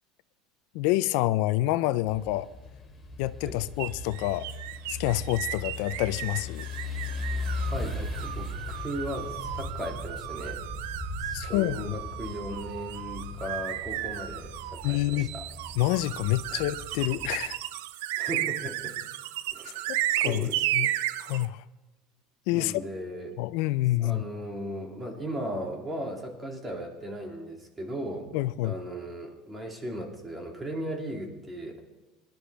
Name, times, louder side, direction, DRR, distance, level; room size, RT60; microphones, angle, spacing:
voice 1, 0.7-2.5 3.2-4.5 4.9-6.7 11.3-11.9 14.8-15.3 15.8-17.6 19.9-20.5 20.7-20.9 21.2-21.6 22.5-22.8 23.4-24.2 28.3-28.7, left 17 dB, 75° left, 15 dB, 0.4 m, -27 dB
sound 1, 2.1-17.4, left 2 dB, 10° left, 2.8 m, -38 dB
sound 2, 3.8-21.5, right 14 dB, 85° right, 0.5 m, -34 dB
voice 2, 7.7-10.6 11.2-15.5 16.5-16.6 18.2-19.0 19.5-20.9 22.5-23.4 24.0-28.3 28.6-31.8, equal, 20° right, 1 dB, 2.7 m, -37 dB
19.5 x 11.5 x 3.5 m, 1.1 s
supercardioid pair, 115°, 0 cm